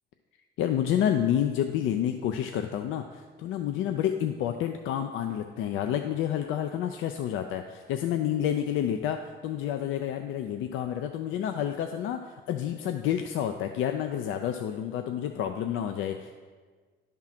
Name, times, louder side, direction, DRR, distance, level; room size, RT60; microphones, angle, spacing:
voice 1, 0.6-16.4, left 10 dB, 90° left, 6 dB, 0.4 m, -29 dB
10.5 x 3.7 x 5.7 m, 1.5 s
cardioid pair, 90°, 20 cm